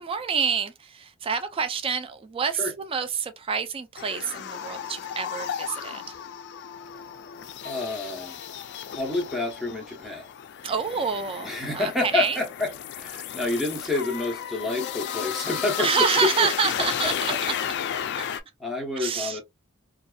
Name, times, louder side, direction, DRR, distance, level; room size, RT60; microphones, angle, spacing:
voice 1, 0.0-6.2 10.6-12.4 15.8-17.5 18.2-18.3 19.0-19.4, right 6 dB, 25° right, 0.3 m, -28 dB
sound 1, 4.0-18.4, left 9 dB, 55° left, 0.3 m, -33 dB
voice 2, 7.6-8.4 8.9-10.3 11.4-15.9 16.2-16.5 17.3-17.4 18.6-19.4, left 2 dB, ahead, 0.8 m, -28 dB
2.6 x 2.4 x 2.2 m
head